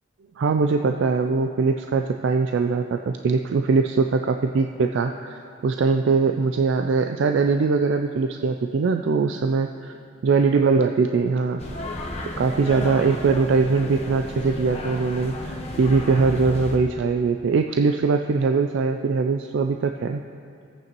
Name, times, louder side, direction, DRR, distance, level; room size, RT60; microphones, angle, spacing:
voice 1, 0.4-9.9 10.2-11.6 12.4-20.2, right 4 dB, 75° right, 5 dB, 0.3 m, -22 dB
sound 1, 11.6-16.8, left 1 dB, 35° left, 0.9 m, -33 dB
17.0 x 8.4 x 3.0 m, 2.4 s
head